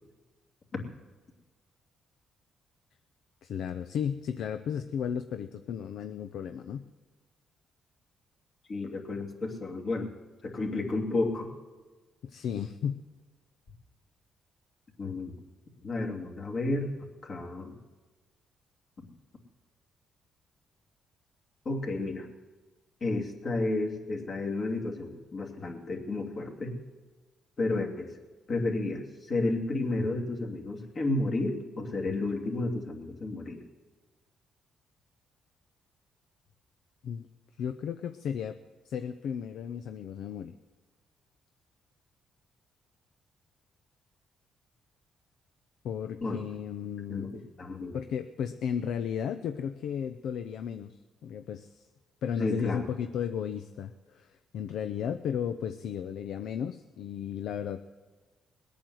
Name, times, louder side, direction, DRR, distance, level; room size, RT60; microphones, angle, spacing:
voice 1, 3.4-6.8 12.2-13.0 37.0-37.3 37.6-38.6 38.9-40.5 45.8-47.3 47.9-50.9 51.2-51.9 52.2-57.9, left 8 dB, 75° left, 9 dB, 0.6 m, -34 dB
voice 2, 8.7-10.1 10.4-11.5 15.0-15.3 15.8-16.9 17.2-17.8 21.6-22.3 23.0-26.7 27.6-28.1 28.5-33.6 46.2-46.4 47.1-48.0 52.4-52.8, left 2 dB, 45° left, 1 dB, 2.8 m, -31 dB
20.0 x 8.6 x 7.9 m, 1.3 s
cardioid pair, 90°, 0 cm